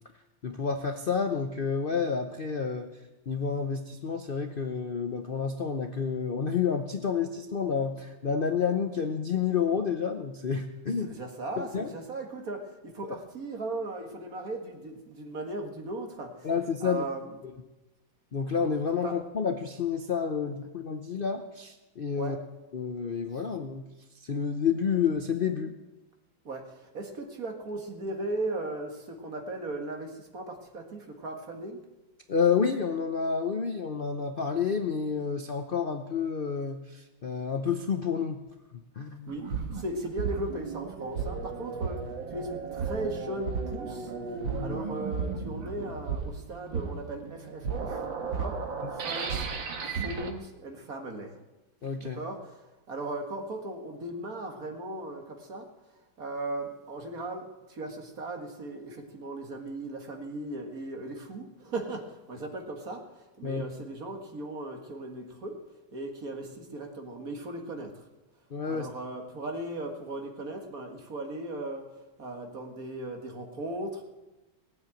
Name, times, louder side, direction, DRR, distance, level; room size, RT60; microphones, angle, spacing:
voice 1, 0.4-2.9 3.3-11.1 11.7-11.9 13.0-13.2 16.4-17.0 18.3-22.4 22.7-23.9 24.1-25.7 32.3-38.4 39.0-39.3 44.5-44.8 51.8-52.2 63.4-63.6 68.5-68.9, left 6 dB, 75° left, 6 dB, 0.5 m, -29 dB
voice 2, 11.0-16.5 16.8-17.3 19.0-19.2 22.1-22.4 23.3-23.4 26.4-31.8 39.3-44.1 44.6-48.6 48.9-49.5 49.8-51.4 52.0-55.7 56.2-65.6 65.9-68.1 68.7-74.0, right 2 dB, 45° right, 3 dB, 2.2 m, -37 dB
sound 1, 39.3-50.3, right 5 dB, 70° right, 2.2 m, -34 dB
19.0 x 7.9 x 8.9 m, 1.1 s
omnidirectional pair, 2.2 m